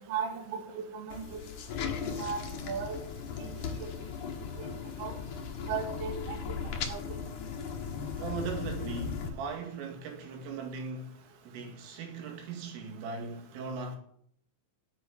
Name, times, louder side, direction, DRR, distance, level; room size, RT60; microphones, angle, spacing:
voice 1, 0.1-1.4 1.8-1.9 2.2-3.0 3.4-3.5 3.8-3.9 5.0-5.1 5.7-6.4 6.9-7.0, right 6 dB, 45° right, 2.1 m, -36 dB
sound 1, 1.1-9.3, left 6 dB, 65° left, 2.0 m, -37 dB
voice 2, 8.2-14.0, right 4 dB, 80° right, 4.7 m, -39 dB
8.7 x 8.4 x 9.4 m
omnidirectional pair, 5.7 m